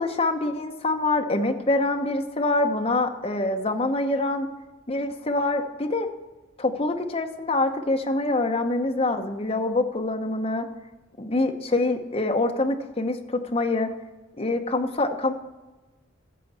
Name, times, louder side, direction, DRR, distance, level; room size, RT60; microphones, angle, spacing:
voice 1, 0.0-4.5 4.9-6.1 6.6-10.7 11.2-13.9 14.4-15.3, left 2 dB, 30° left, 5 dB, 0.8 m, -25 dB
14.0 x 7.0 x 4.2 m, 1.2 s
head